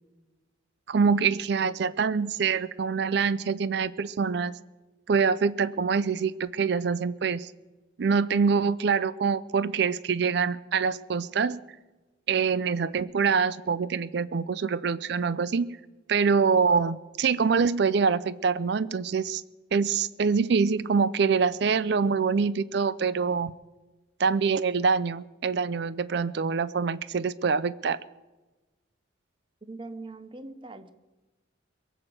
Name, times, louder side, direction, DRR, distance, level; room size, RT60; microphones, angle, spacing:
voice 1, 0.9-4.5 5.1-7.5 8.0-11.6 12.3-15.8 16.1-19.4 19.7-23.5 24.2-28.0, right 5 dB, 60° right, 17 dB, 0.4 m, -25 dB
voice 2, 29.7-30.9, right 2 dB, 25° right, 11 dB, 0.8 m, -41 dB
22.0 x 7.9 x 7.7 m, 1.2 s
head